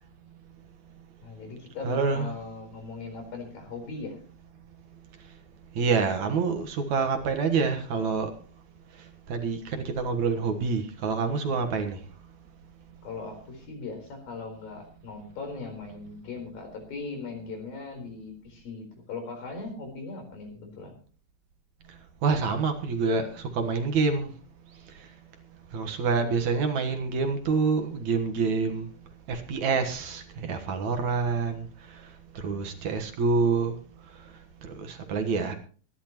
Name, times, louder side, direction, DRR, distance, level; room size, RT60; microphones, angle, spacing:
voice 1, 1.2-4.2 13.0-20.9, left 4 dB, 85° left, 4 dB, 6.0 m, -39 dB
voice 2, 1.8-2.3 5.8-8.3 9.3-12.0 22.2-24.3 25.7-28.9 29.3-31.7 32.4-33.7 34.7-35.6, right 4 dB, 60° right, 6 dB, 2.6 m, -27 dB
23.5 x 11.5 x 3.0 m, 0.41 s
omnidirectional pair, 4.0 m